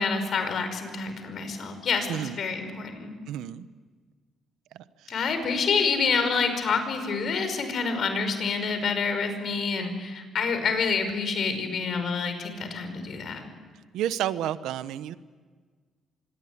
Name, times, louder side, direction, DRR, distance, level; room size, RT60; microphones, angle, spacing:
voice 1, 0.0-3.1 5.1-13.5, left 5 dB, 60° left, 8 dB, 5.4 m, -27 dB
voice 2, 3.3-3.7 13.9-15.2, right 11 dB, 90° right, 14 dB, 0.9 m, -30 dB
26.0 x 22.0 x 9.7 m, 1.5 s
cardioid pair, 90°, 0 cm